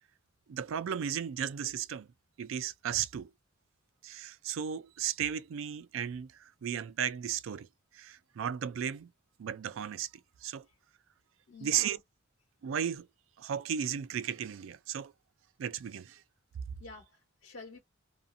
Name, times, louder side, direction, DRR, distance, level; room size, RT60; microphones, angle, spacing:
voice 1, 0.5-2.1 2.4-3.3 4.0-7.7 7.9-9.1 9.4-10.1 10.4-10.7 11.6-12.0 12.6-13.1 13.4-15.1 15.6-16.2, right 9 dB, 70° right, 0.3 m, -35 dB
voice 2, 11.5-12.0 16.8-17.8, left 3 dB, 80° left, 0.9 m, -49 dB
2.5 x 2.4 x 2.6 m
head